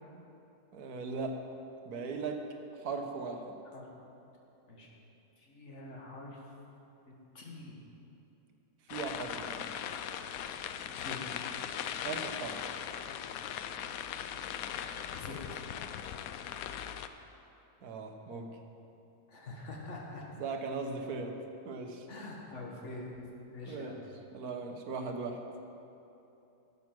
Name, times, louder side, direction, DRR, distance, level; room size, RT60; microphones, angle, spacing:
voice 1, 0.7-1.4 1.8-2.5 2.8-3.5 8.9-9.7 12.0-12.6 17.8-18.5 20.4-21.4 21.6-22.1 23.6-23.9 24.3-25.4, right 4 dB, 70° right, 4 dB, 1.5 m, -38 dB
voice 2, 5.4-6.4 7.1-7.8 11.0-11.2 14.9-15.4 19.3-20.2 22.1-23.1 23.5-24.0, left 2 dB, 45° left, -1 dB, 2.0 m, -45 dB
sound 1, 8.9-17.1, left 9 dB, 70° left, 0.9 m, -39 dB
12.0 x 8.3 x 6.0 m, 2.9 s
omnidirectional pair, 1.7 m